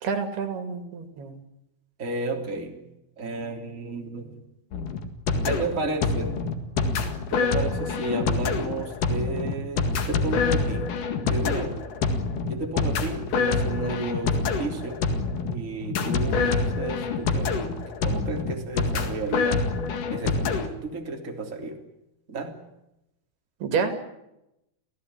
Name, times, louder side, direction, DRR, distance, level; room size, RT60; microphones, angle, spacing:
voice 1, 0.0-1.4 23.6-24.0, right 5 dB, 85° right, 7 dB, 4.4 m, -28 dB
voice 2, 2.0-2.8 3.2-4.4 5.4-6.4 7.3-10.9 11.3-11.8 12.5-15.0 15.5-19.7 20.1-21.8 22.3-22.6, right 2 dB, 20° right, 2 dB, 3.3 m, -32 dB
sound 1, 4.7-20.7, left 4 dB, 60° left, 3.4 m, -26 dB
29.0 x 16.5 x 9.9 m, 0.88 s
omnidirectional pair, 4.5 m